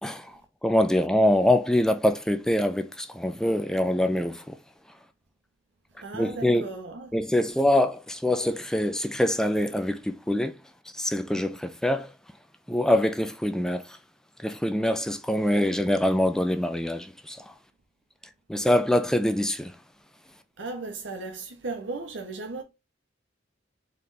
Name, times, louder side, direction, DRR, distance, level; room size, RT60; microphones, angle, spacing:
voice 1, 0.0-4.6 6.1-6.7 7.1-10.6 10.9-12.1 12.7-14.0 14.4-17.5 18.5-19.7, left 1 dB, 5° left, 0.3 m, -24 dB
voice 2, 6.0-7.1 20.6-22.6, right 3 dB, 75° right, 0.9 m, -36 dB
4.2 x 3.2 x 3.9 m
head